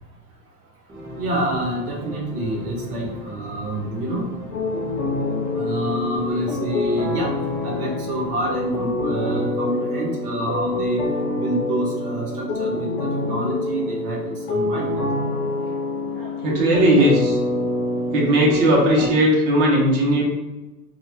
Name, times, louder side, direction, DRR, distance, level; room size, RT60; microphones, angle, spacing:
sound 1, 0.9-9.3, right 1 dB, 5° right, 0.5 m, -39 dB
voice 1, 1.2-4.3 5.5-7.3 7.6-11.0 11.4-14.2 14.5-15.1, right 1 dB, 70° right, -2 dB, 1.1 m, -27 dB
sound 2, 4.5-19.1, left 2 dB, 55° left, 0.7 m, -26 dB
voice 2, 15.9-17.4 18.1-20.2, equal, 50° right, -3 dB, 1.0 m, -18 dB
2.7 x 2.4 x 3.2 m, 1.1 s
hypercardioid pair, 100°, 48 cm